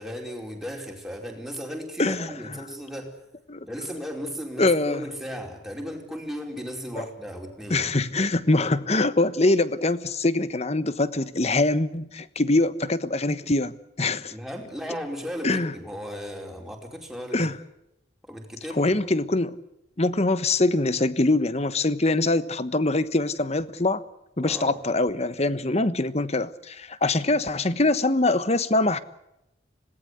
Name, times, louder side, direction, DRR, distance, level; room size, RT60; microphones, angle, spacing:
voice 1, 0.0-3.2 3.6-7.9 14.3-17.5 18.2-18.9 24.4-24.8, equal, ahead, 2 dB, 4.7 m, -36 dB
voice 2, 4.6-5.0 7.0-7.1 7.7-14.3 15.4-15.7 17.3-17.6 18.8-19.6 20.0-24.0 24.4-29.0, left 2 dB, 35° left, 14 dB, 1.2 m, -23 dB
26.0 x 19.0 x 8.2 m, 0.85 s
head